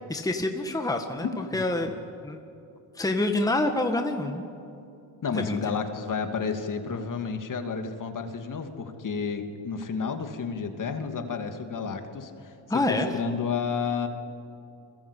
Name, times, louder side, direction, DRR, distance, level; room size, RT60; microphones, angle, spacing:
voice 1, 0.0-1.3 1.5-1.9 2.2-2.4 3.0-4.4 5.3-5.6 12.7-13.1, left 2 dB, 10° left, 4 dB, 1.8 m, -27 dB
voice 2, 1.2-1.6 5.2-12.5 12.9-14.1, left 5 dB, 40° left, 6 dB, 2.6 m, -31 dB
29.5 x 22.0 x 8.5 m, 2.6 s
cardioid pair, 100°, 47 cm